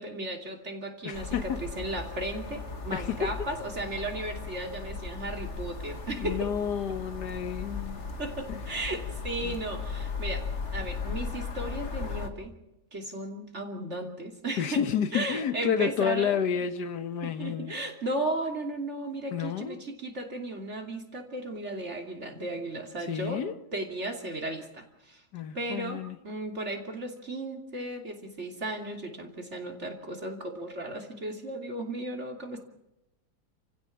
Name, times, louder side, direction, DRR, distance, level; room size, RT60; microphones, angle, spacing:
voice 1, 0.0-6.5 8.2-10.4 10.7-12.5 12.9-14.8 15.1-16.4 17.2-23.4 23.7-25.2 25.5-32.6, right 1 dB, 45° right, 2 dB, 3.2 m, -35 dB
voice 2, 1.0-1.6 2.9-3.5 6.1-8.0 8.5-8.6 9.4-9.6 14.6-17.7 19.3-19.8 23.0-23.5 25.3-26.2, left 8 dB, 85° left, 10 dB, 1.8 m, -30 dB
sound 1, 1.1-12.3, left 4 dB, 45° left, 2.1 m, -37 dB
29.0 x 15.5 x 7.3 m, 0.90 s
omnidirectional pair, 1.7 m